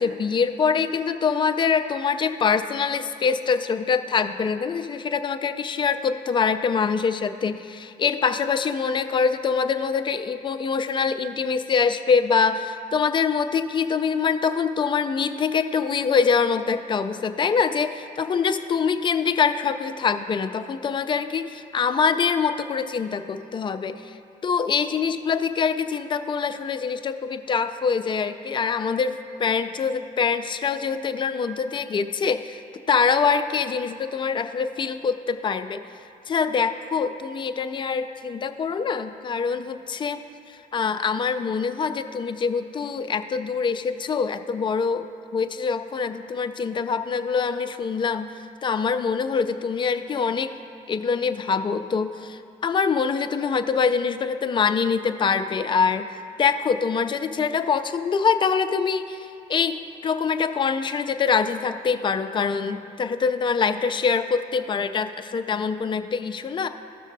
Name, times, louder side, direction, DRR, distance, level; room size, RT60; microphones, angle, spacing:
voice 1, 0.0-24.2 24.4-32.6 32.9-35.8 36.3-40.2 40.5-45.1 45.3-50.5 50.9-56.1 56.4-66.7, left 5 dB, 30° left, 8 dB, 0.4 m, -24 dB
15.5 x 6.3 x 2.6 m, 2.7 s
cardioid pair, 110°, 17 cm